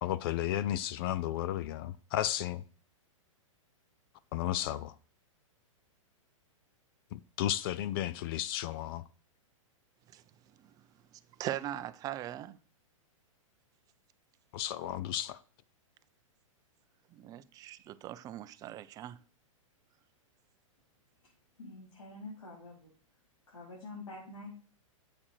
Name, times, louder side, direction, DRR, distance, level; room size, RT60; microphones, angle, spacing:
voice 1, 0.0-2.6 4.3-4.9 7.1-9.0 14.5-15.4, left 12 dB, 45° left, 0.5 m, -33 dB
voice 2, 11.4-12.6 17.1-19.2, right 13 dB, 20° right, 0.5 m, -40 dB
voice 3, 21.6-22.9 23.5-24.5, left 2 dB, 85° left, 4.5 m, -46 dB
8.5 x 7.7 x 4.5 m
hypercardioid pair, 145°, 17 cm